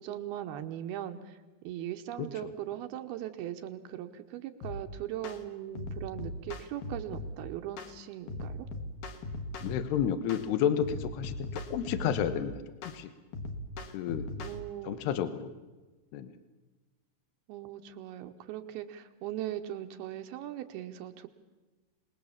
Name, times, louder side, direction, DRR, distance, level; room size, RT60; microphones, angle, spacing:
voice 1, 0.0-1.4 1.6-8.7 14.4-15.1 17.5-21.3, right 12 dB, 75° right, 7 dB, 2.7 m, -39 dB
voice 2, 2.2-2.5 9.6-12.5 12.8-13.1 13.9-14.3 14.8-15.5 16.1-16.3, left 9 dB, 80° left, 11 dB, 3.2 m, -31 dB
sound 1, 4.6-4.8 5.2-5.4 5.8-7.4 7.8-8.0 8.3-9.9 10.3-10.5 10.8-12.4 12.8-13.0 13.3-14.6, left 2 dB, 60° left, 2.9 m, -39 dB
26.5 x 20.5 x 7.3 m, 1.2 s
omnidirectional pair, 4.7 m